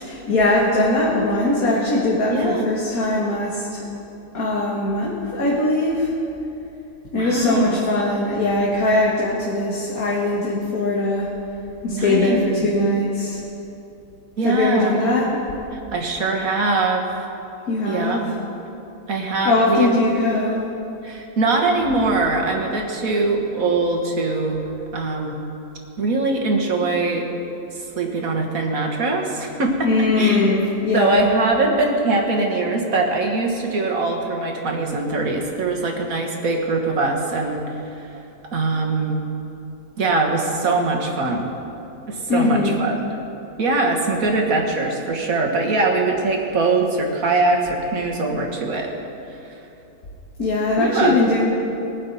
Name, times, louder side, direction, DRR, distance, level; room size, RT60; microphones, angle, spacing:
voice 1, 0.0-3.8 4.3-6.1 7.1-11.3 11.8-13.4 14.4-15.3 17.7-18.2 19.4-20.6 29.8-31.2 42.3-42.8 50.4-51.4, left 2 dB, 75° left, -5 dB, 2.2 m, -20 dB
voice 2, 2.3-2.7 7.2-7.9 11.9-12.6 14.4-15.0 15.9-17.1 17.8-18.2 19.1-19.9 20.2-20.3 21.0-24.6 24.9-25.4 26.0-27.3 27.7-30.4 30.9-37.7 38.5-39.2 40.0-41.5 42.1-43.0 43.6-48.9 50.8-51.2, right 3 dB, 70° right, 1 dB, 2.0 m, -22 dB
21.5 x 9.6 x 4.2 m, 2.9 s
omnidirectional pair, 1.5 m